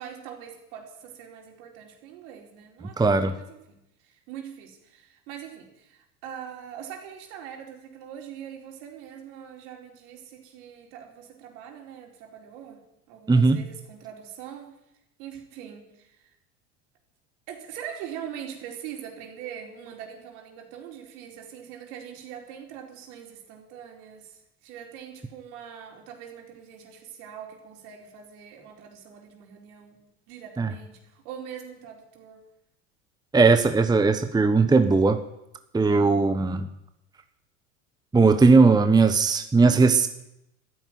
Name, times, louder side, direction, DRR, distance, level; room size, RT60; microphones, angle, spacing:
voice 1, 0.0-3.8 4.0-12.8 13.1-14.7 15.2-16.3 17.5-32.4, right 9 dB, 65° right, 1 dB, 4.6 m, -42 dB
voice 2, 3.0-3.3 13.3-13.6 30.6-30.7 33.3-35.2 35.7-36.7 38.1-40.1, right 4 dB, 10° right, 8 dB, 1.0 m, -18 dB
13.5 x 10.5 x 9.5 m, 0.85 s
hypercardioid pair, 95°, 47 cm